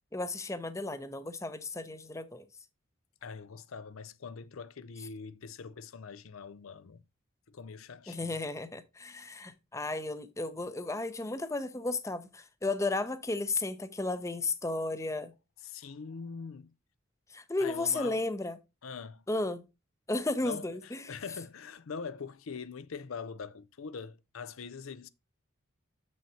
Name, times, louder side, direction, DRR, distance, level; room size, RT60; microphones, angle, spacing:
voice 1, 0.1-2.5 8.1-15.3 17.3-18.6 19.3-19.6 20.1-21.1, left 2 dB, 15° left, 0.5 m, -34 dB
voice 2, 3.2-7.0 7.5-8.4 15.6-16.7 17.6-18.2 18.8-19.2 20.4-25.1, left 5 dB, 90° left, 0.6 m, -43 dB
7.0 x 6.2 x 2.7 m
head